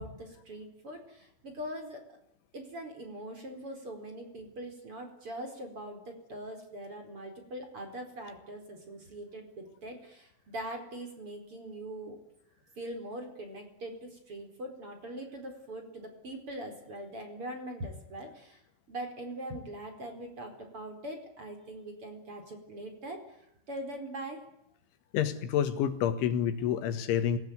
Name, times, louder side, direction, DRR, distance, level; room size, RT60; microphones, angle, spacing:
voice 1, 0.0-2.0 2.5-12.2 12.8-18.6 18.9-23.2 23.7-24.4, right 1 dB, 30° right, 5 dB, 5.0 m, -42 dB
voice 2, 25.1-27.4, left 9 dB, 75° left, 10 dB, 3.9 m, -28 dB
27.5 x 18.0 x 9.5 m, 0.80 s
omnidirectional pair, 5.6 m